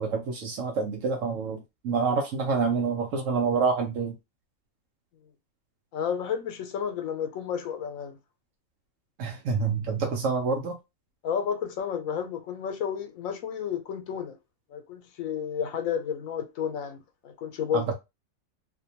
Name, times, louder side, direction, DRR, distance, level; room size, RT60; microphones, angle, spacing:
voice 1, 0.0-1.6 1.8-4.1 9.2-10.8 17.7-17.9, right 5 dB, 75° right, 0.9 m, -27 dB
voice 2, 5.9-8.2 11.2-14.4 14.7-17.9, left 8 dB, 90° left, 1.0 m, -31 dB
2.6 x 2.2 x 2.8 m
omnidirectional pair, 1.4 m